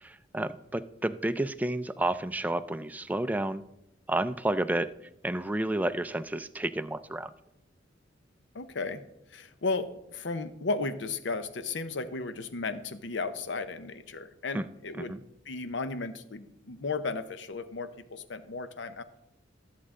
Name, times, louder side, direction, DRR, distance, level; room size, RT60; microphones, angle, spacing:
voice 1, 0.0-3.6 4.1-4.9 5.2-7.3 14.5-14.6 15.0-15.2, right 1 dB, 10° right, 12 dB, 0.3 m, -30 dB
voice 2, 8.5-9.0 9.3-15.2 15.5-19.0, left 3 dB, 70° left, 11 dB, 0.7 m, -34 dB
13.5 x 7.4 x 3.7 m, 0.86 s
head